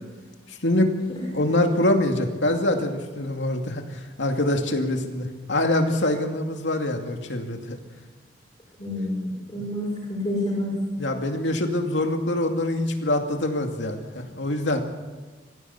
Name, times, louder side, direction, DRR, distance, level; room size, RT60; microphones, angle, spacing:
voice 1, 0.5-1.0 1.3-7.8 11.0-14.8, left 1 dB, 85° left, 4 dB, 2.5 m, -24 dB
voice 2, 8.8-11.0, left 1 dB, 20° left, -4 dB, 5.9 m, -28 dB
22.0 x 15.5 x 8.4 m, 1.4 s
head